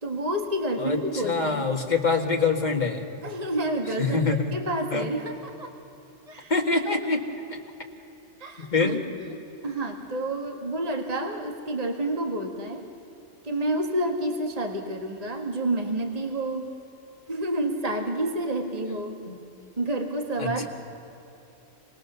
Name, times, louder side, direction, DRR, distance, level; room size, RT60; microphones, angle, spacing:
voice 1, 0.0-1.7 3.2-5.7 6.3-6.5 8.4-8.9 9.2-12.8 13.4-16.8 17.3-19.2 19.8-20.7, right 1 dB, 30° right, 3 dB, 1.8 m, -29 dB
voice 2, 0.8-3.1 4.0-4.5 4.9-5.1 6.5-7.2 7.5-7.6 8.6-9.0 19.3-19.4 20.4-20.7, left 4 dB, 35° left, 2 dB, 2.0 m, -25 dB
26.5 x 20.0 x 6.9 m, 3.0 s
omnidirectional pair, 1.3 m